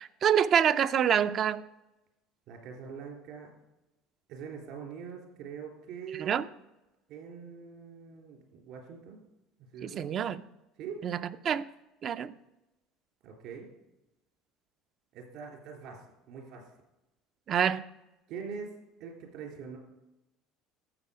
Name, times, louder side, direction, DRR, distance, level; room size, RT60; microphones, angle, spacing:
voice 1, 0.0-1.6 6.2-6.5 9.8-10.4 11.0-11.7 12.0-12.3 17.5-17.8, right 8 dB, 45° right, 13 dB, 0.5 m, -27 dB
voice 2, 2.5-3.5 4.3-6.4 7.1-9.2 9.7-10.1 10.8-11.0 13.2-13.7 15.1-16.7 18.3-18.7 19.0-19.8, right 6 dB, 70° right, 0 dB, 3.4 m, -43 dB
13.0 x 7.6 x 5.0 m, 0.97 s
supercardioid pair, 115°, 0 cm